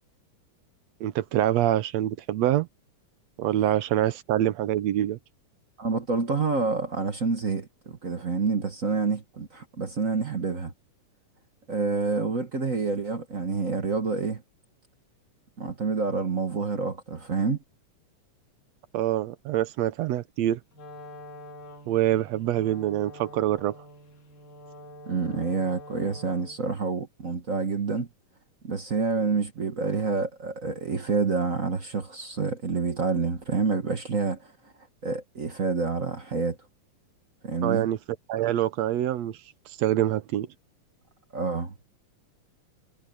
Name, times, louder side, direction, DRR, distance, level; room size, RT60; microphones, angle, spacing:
voice 1, 1.0-2.7 3.4-5.2 18.9-20.6 21.9-23.8 37.6-38.0 38.3-39.4 39.8-40.5, right 12 dB, 70° right, 1.8 m, -25 dB
voice 2, 5.8-10.7 11.7-14.4 15.6-17.6 25.1-28.1 28.6-34.5 35.0-36.6 37.4-37.9 41.3-41.7, right 4 dB, 45° right, 1.1 m, -28 dB
Wind instrument woodwind instrument, 20.7-26.7, equal, 85° left, 5.5 m, -46 dB
omnidirectional pair, 3.6 m